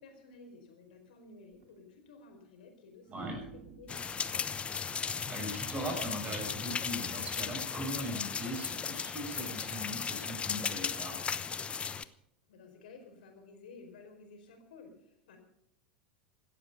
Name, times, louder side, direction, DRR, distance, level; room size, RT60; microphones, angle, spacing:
voice 1, 0.0-4.9 12.5-15.4, left 3 dB, 70° left, 4 dB, 4.7 m, -54 dB
sound 1, 1.5-1.7 3.0-6.1 7.7-8.0, right 3 dB, 45° right, 3.1 m, -49 dB
sound 2, 3.9-12.0, left 6 dB, 25° left, 0.8 m, -36 dB
voice 2, 5.3-11.2, equal, 25° right, 2 dB, 6.7 m, -40 dB
17.0 x 13.0 x 5.4 m, 0.75 s
figure-of-eight pair, 85°, 5 cm